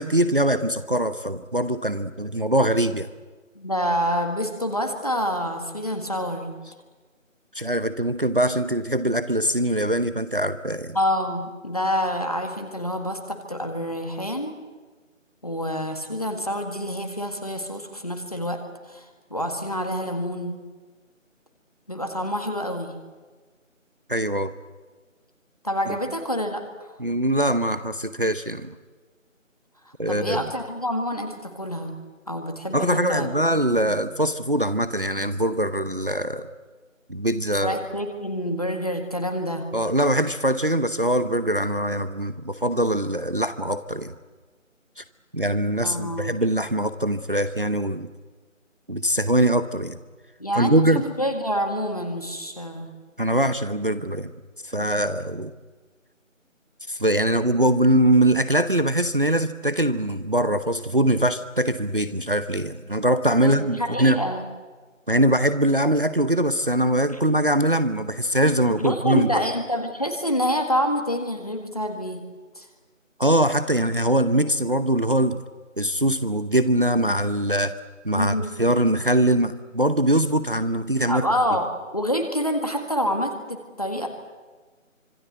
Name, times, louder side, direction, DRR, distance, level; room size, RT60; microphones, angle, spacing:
voice 1, 0.0-3.1 7.5-11.0 24.1-24.5 27.0-28.8 30.0-30.5 32.7-36.5 37.1-37.8 39.7-44.1 45.0-45.1 45.3-48.1 48.9-50.0 50.5-51.0 53.2-54.3 54.6-55.5 56.9-64.2 65.1-69.4 73.2-75.4 75.8-77.7 78.0-81.2, right 1 dB, 40° right, 12 dB, 0.9 m, -22 dB
voice 2, 3.6-6.6 10.9-14.5 15.4-18.6 18.9-20.6 21.9-23.0 25.6-26.9 30.1-32.0 32.3-33.3 33.9-34.0 37.5-39.7 45.8-46.3 50.4-52.9 54.8-54.9 63.4-64.4 68.8-72.2 72.6-72.7 78.1-78.5 81.1-81.7 81.9-84.1, equal, 30° left, 5 dB, 1.8 m, -27 dB
25.5 x 23.5 x 8.0 m, 1.4 s
figure-of-eight pair, 180°, 39 cm